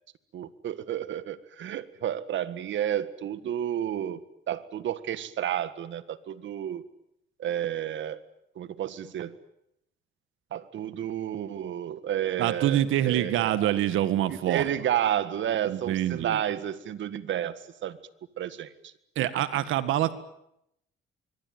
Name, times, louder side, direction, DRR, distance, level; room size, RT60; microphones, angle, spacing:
voice 1, 0.3-4.2 4.5-6.8 7.4-8.2 8.6-9.3 10.5-13.7 14.3-18.0 18.4-18.9, right 10 dB, 70° right, 14 dB, 1.8 m, -31 dB
voice 2, 12.4-14.7 15.7-16.4 19.2-20.1, right 12 dB, 85° right, 13 dB, 1.9 m, -26 dB
25.0 x 23.0 x 9.5 m, 0.79 s
cardioid pair, 90°, 20 cm